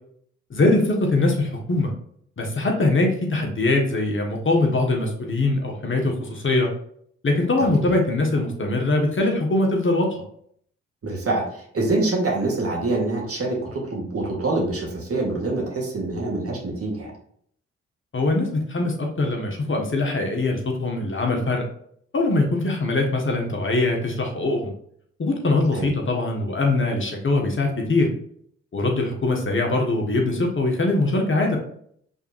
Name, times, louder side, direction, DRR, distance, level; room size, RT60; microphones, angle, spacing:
voice 1, 0.5-1.9 2.4-6.7 7.2-10.1 18.1-21.7 22.1-24.7 25.2-28.1 28.7-31.6, left 2 dB, 40° left, 1 dB, 1.4 m, -22 dB
voice 2, 11.0-11.4 11.7-17.1 25.8-25.9, right 2 dB, 45° right, -2 dB, 1.9 m, -25 dB
5.4 x 3.6 x 2.5 m, 0.64 s
hypercardioid pair, 40°, 32 cm